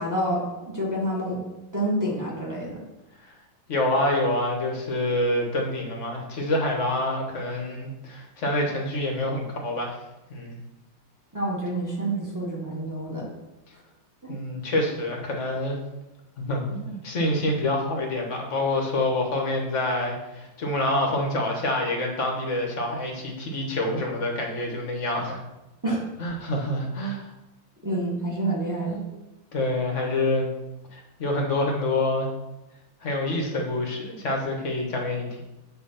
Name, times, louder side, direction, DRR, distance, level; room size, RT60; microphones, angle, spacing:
voice 1, 0.0-1.4 1.7-2.8 11.3-13.2 14.2-14.3 25.8-26.0 27.8-29.0, right 1 dB, 10° right, -4 dB, 1.5 m, -28 dB
voice 2, 3.7-10.0 10.3-10.6 14.3-15.8 16.4-25.4 26.2-27.2 29.5-30.5 30.9-32.3 33.0-35.4, left 1 dB, 40° left, 1 dB, 1.3 m, -27 dB
8.2 x 3.5 x 5.6 m, 0.98 s
omnidirectional pair, 2.3 m